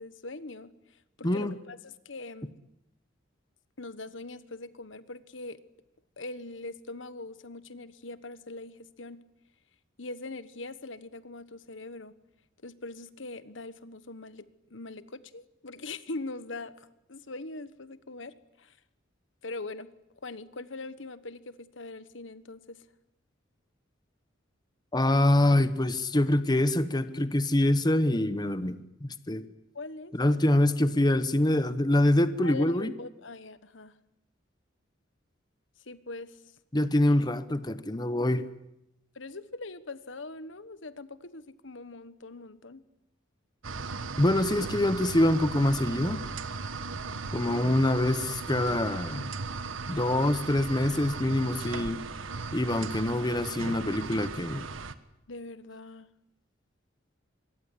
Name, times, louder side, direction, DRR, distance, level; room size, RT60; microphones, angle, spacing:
voice 1, 0.0-2.5 3.8-5.6 6.2-9.2 10.0-12.1 12.6-18.8 19.4-19.9 20.2-22.8 29.7-30.4 32.4-33.9 35.8-36.4 39.1-42.8 55.3-56.1, left 2 dB, 70° left, 14 dB, 1.4 m, -42 dB
voice 2, 1.2-1.5 24.9-29.4 30.1-32.9 36.7-38.5 44.2-46.2 47.3-49.3 49.9-52.0 52.5-54.6, left 1 dB, 20° left, 12 dB, 1.0 m, -25 dB
sound 1, 43.6-54.9, right 4 dB, 85° right, 1.4 m, -37 dB
25.5 x 22.5 x 10.0 m, 0.86 s
head